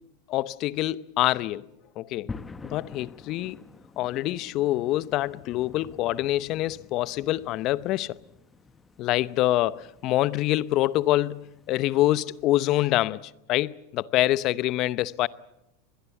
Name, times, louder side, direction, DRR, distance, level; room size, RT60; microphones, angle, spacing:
voice 1, 0.3-1.7 2.0-2.3 2.7-3.6 4.0-8.2 9.0-15.3, left 16 dB, 50° left, 0.8 m, -25 dB
sound 1, 2.3-12.4, left 4 dB, 15° left, 1.0 m, -47 dB
24.5 x 21.0 x 7.2 m
hypercardioid pair, 100°, 0 cm